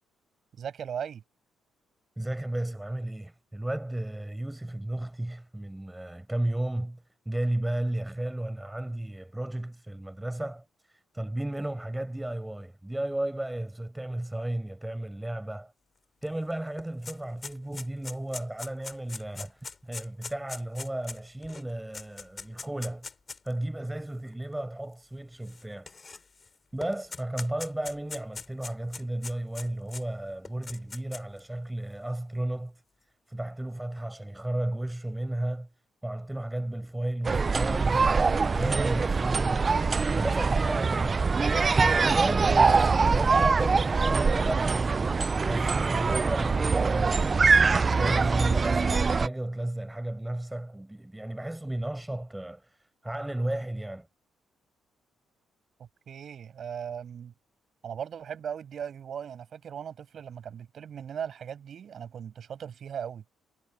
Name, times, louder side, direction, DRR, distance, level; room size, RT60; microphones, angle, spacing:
voice 1, 0.6-1.2 56.1-57.3 57.8-63.2, right 8 dB, 55° right, 7.5 m, -38 dB
voice 2, 2.2-15.7 16.2-23.1 23.4-26.0 26.7-32.8 33.3-35.7 36.0-39.7 40.1-41.2 41.7-54.1, right 1 dB, 10° right, 7.4 m, -34 dB
sound 1, 16.2-16.3 16.6-23.5 24.3-24.4 25.4-26.5 26.8-30.0 30.4-31.4, left 4 dB, 35° left, 4.5 m, -41 dB
sound 2, 37.2-49.3, right 4 dB, 35° right, 0.5 m, -23 dB
cardioid pair, 90°, 0 cm